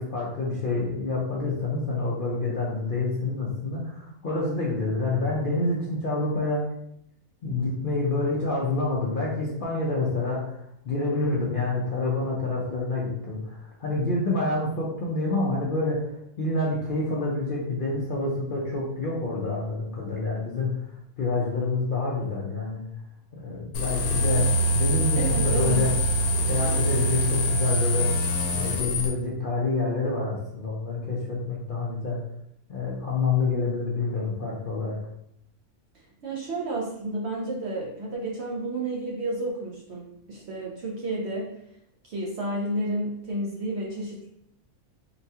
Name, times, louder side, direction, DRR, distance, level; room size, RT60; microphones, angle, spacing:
voice 1, 0.0-6.7 7.4-20.9 21.2-22.8 23.3-25.9 26.4-28.1 28.5-32.2 32.7-35.0, left 3 dB, 55° left, -5 dB, 0.6 m, -27 dB
sound 1, 23.7-29.1, equal, 85° left, 1.1 m, -24 dB
voice 2, 25.1-25.8 36.2-41.5 42.0-44.3, right 2 dB, 65° right, -2 dB, 0.7 m, -31 dB
3.9 x 2.3 x 2.7 m, 0.75 s
omnidirectional pair, 1.5 m